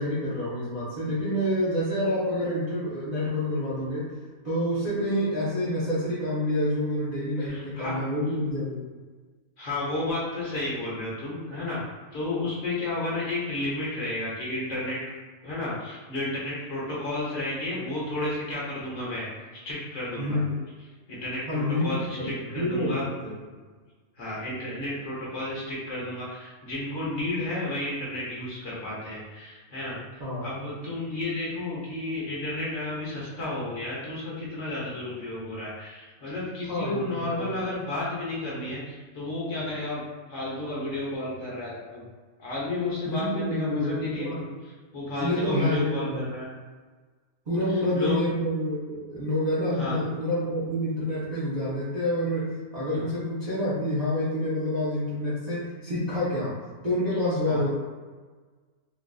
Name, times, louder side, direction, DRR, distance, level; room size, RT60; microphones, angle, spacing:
voice 1, 0.0-4.1 4.4-8.8 20.1-20.5 21.5-23.3 30.2-30.5 36.7-37.6 43.0-44.5 45.1-46.3 47.5-56.5 56.8-57.8, left 1 dB, 35° right, -10 dB, 0.7 m, -28 dB
voice 2, 7.4-8.0 9.6-11.9 12.1-15.0 15.4-19.3 19.6-20.4 21.1-23.1 24.2-40.0 40.3-42.1 42.4-44.5 44.9-46.5 47.7-48.2 49.7-50.0 52.9-53.1 57.5-57.6, left 2 dB, 60° left, -6 dB, 1.2 m, -32 dB
3.7 x 2.5 x 2.3 m, 1.4 s
omnidirectional pair, 1.6 m